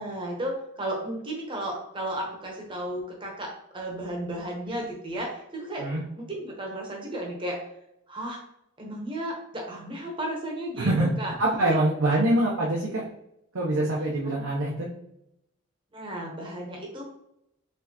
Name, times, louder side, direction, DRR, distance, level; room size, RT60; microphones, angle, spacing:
voice 1, 0.0-5.9 6.2-7.6 8.1-8.4 8.8-10.9 11.2-11.3 11.7-11.8 15.9-17.0, right 1 dB, 25° right, -1 dB, 0.9 m, -34 dB
voice 2, 10.8-11.1 11.4-13.0 13.5-14.9, right 1 dB, 80° right, -4 dB, 0.8 m, -24 dB
4.3 x 3.3 x 2.9 m, 0.80 s
head